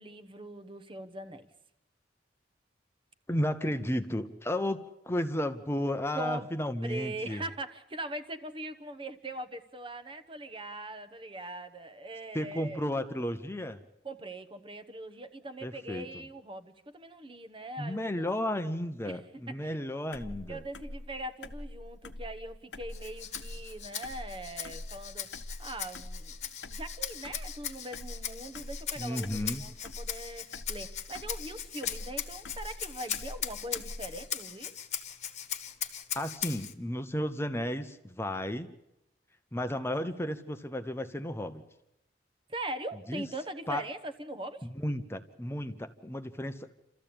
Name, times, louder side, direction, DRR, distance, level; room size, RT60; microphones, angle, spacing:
voice 1, 0.0-1.5 6.1-6.5 6.8-12.8 14.0-18.3 19.0-19.2 19.6-19.8 20.5-25.3 25.6-26.4 26.7-34.8 42.5-44.7, right 1 dB, 30° right, 1.1 m, -41 dB
voice 2, 3.3-7.4 12.3-13.8 15.6-16.1 17.8-20.6 29.0-29.6 36.1-38.7 39.5-41.6 43.1-43.3 43.7-43.8 44.6-46.7, left 1 dB, 15° left, 0.8 m, -33 dB
sound 1, 20.1-34.3, left 1 dB, 85° left, 1.1 m, -44 dB
Rattle (instrument), 22.9-36.7, left 9 dB, 40° left, 1.3 m, -39 dB
28.0 x 14.0 x 8.7 m
head